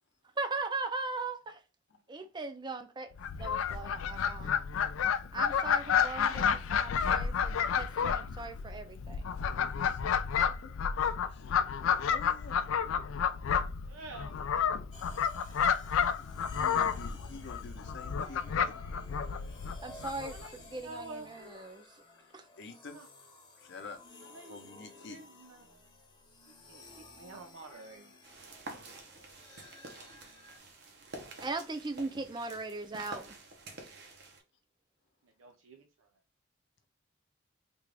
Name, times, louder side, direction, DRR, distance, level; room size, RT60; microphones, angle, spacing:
voice 1, 0.4-1.6 2.1-3.1 3.4-4.5 5.3-9.2 19.8-20.3 20.7-21.8 22.3-22.4 31.4-33.4, right 3 dB, 25° right, 0.4 m, -39 dB
Fowl, 3.2-20.5, left 7 dB, 85° left, 0.3 m, -31 dB
voice 2, 11.3-11.6 12.0-12.8 16.2-18.8 22.2-23.0 23.6-24.0 24.5-25.2, left 4 dB, 60° left, 0.7 m, -48 dB
voice 3, 13.8-14.3 20.2-21.3 22.9-23.1 24.2-24.6 25.0-25.7 26.4-28.2 35.2-36.1, right 3 dB, 85° right, 0.5 m, -49 dB
sound 1, 14.9-30.6, left 2 dB, 25° left, 0.8 m, -55 dB
sound 2, 28.2-34.4, right 2 dB, 60° right, 0.8 m, -48 dB
3.4 x 2.4 x 3.3 m
head